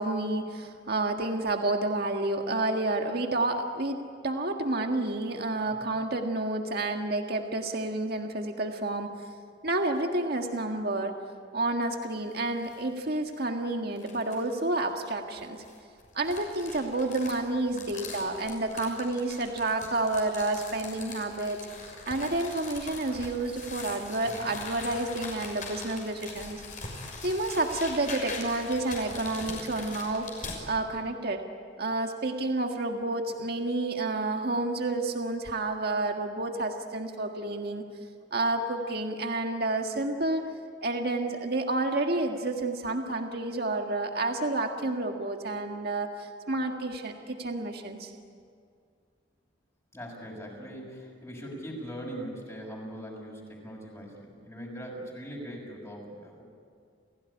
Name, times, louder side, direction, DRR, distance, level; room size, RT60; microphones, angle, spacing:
voice 1, 0.0-4.0 4.2-9.2 9.6-11.2 11.5-15.6 16.1-26.6 27.2-31.4 31.8-37.8 38.3-40.4 40.8-48.1, right 2 dB, 55° right, 3 dB, 1.7 m, -30 dB
sound 1, 12.3-12.8 13.3-13.4 14.0-14.5 15.4-30.6, left 3 dB, 45° left, 6.3 m, -42 dB
voice 2, 49.9-56.4, equal, 15° left, -2 dB, 6.1 m, -41 dB
30.0 x 17.0 x 10.0 m, 2.3 s
head